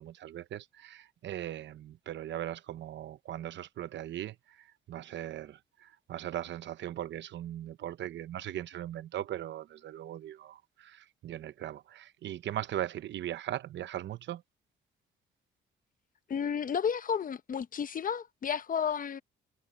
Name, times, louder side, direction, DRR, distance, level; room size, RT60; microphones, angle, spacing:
voice 1, 0.0-14.4, right 12 dB, 65° right, 0.8 m, -39 dB
voice 2, 16.3-19.2, left 7 dB, 45° left, 0.9 m, -32 dB
cardioid pair, 90°, 20 cm